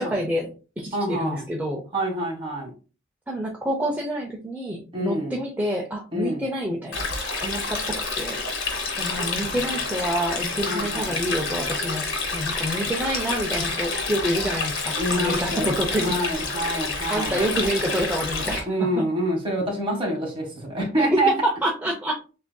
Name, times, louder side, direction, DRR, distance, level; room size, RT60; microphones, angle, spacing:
voice 1, 0.0-1.8 3.3-7.1 7.4-8.4 9.0-12.0 12.3-16.2 17.1-19.0 21.0-22.2, equal, 10° right, 0 dB, 0.5 m, -27 dB
voice 2, 0.9-1.5 1.9-2.7 4.9-5.4 6.1-6.4 9.4-9.6 10.7-11.2 15.0-17.4 18.7-21.3, right 1 dB, 25° right, -1 dB, 1.5 m, -27 dB
Stream, 6.9-18.6, left 3 dB, 75° left, 1.3 m, -28 dB
7.0 x 2.7 x 2.2 m, 0.35 s
head